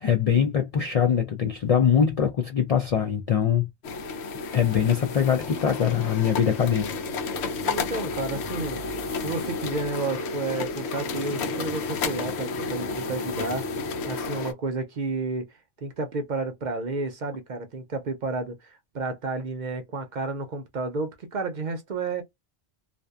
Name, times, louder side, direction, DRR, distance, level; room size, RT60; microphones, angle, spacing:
voice 1, 0.0-3.7 4.5-6.9, left 8 dB, 55° left, 0.4 m, -22 dB
sound 1, 3.8-14.5, left 4 dB, 85° left, 0.9 m, -31 dB
voice 2, 7.6-8.8 9.2-13.6 14.1-15.5 15.8-22.2, right 3 dB, 55° right, 0.6 m, -31 dB
2.6 x 2.1 x 2.3 m
omnidirectional pair, 1.1 m